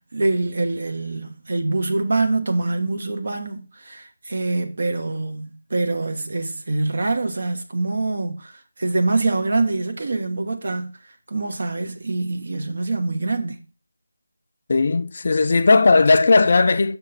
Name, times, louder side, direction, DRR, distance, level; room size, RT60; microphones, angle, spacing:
voice 1, 0.1-8.5 8.8-10.9 11.3-13.6, right 2 dB, 55° right, 1.3 m, -24 dB
voice 2, 14.7-17.0, left 3 dB, 50° left, 0.6 m, -16 dB
6.1 x 5.7 x 4.1 m
figure-of-eight pair, 165°, 0 cm